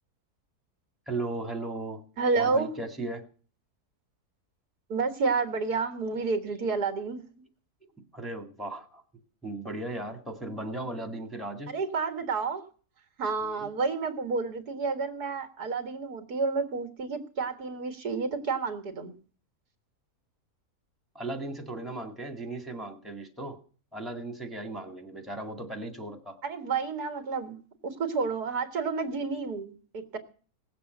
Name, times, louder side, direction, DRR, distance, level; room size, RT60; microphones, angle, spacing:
voice 1, 1.1-2.0 2.3-3.3 8.1-9.0 9.4-11.7 13.4-13.7 21.1-23.6 23.9-26.4, right 2 dB, ahead, 4 dB, 2.0 m, -36 dB
voice 2, 2.2-2.7 4.9-7.3 11.7-12.6 13.2-19.1 26.4-30.2, right 4 dB, 90° right, 6 dB, 2.3 m, -30 dB
18.0 x 7.7 x 7.9 m, 0.42 s
omnidirectional pair, 1.6 m